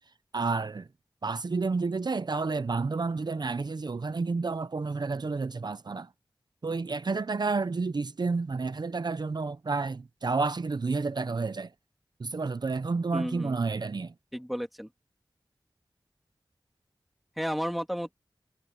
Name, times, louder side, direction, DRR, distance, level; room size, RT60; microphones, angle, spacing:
voice 1, 0.3-0.9 1.2-6.1 6.6-11.7 12.2-14.1, right 4 dB, 60° right, 0.6 m, -30 dB
voice 2, 13.1-13.6 14.3-14.9 17.4-18.1, equal, ahead, 3.0 m, -32 dB
wide cardioid pair, 75°, 8 cm